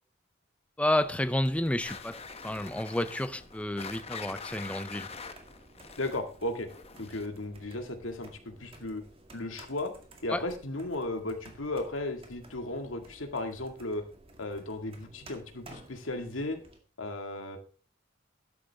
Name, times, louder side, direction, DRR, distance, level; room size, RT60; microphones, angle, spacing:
voice 1, 0.8-5.1 10.3-10.4, left 1 dB, 5° left, 0.5 m, -30 dB
sound 1, 1.0-16.8, right 2 dB, 30° right, 2.1 m, -54 dB
sound 2, 1.8-7.4, left 5 dB, 30° left, 1.0 m, -44 dB
voice 2, 6.0-6.7 7.0-8.3 8.6-9.0 9.3-9.9 10.2-14.0 14.4-16.6 17.0-17.6, left 2 dB, 85° left, 1.9 m, -35 dB
13.0 x 10.0 x 3.4 m
head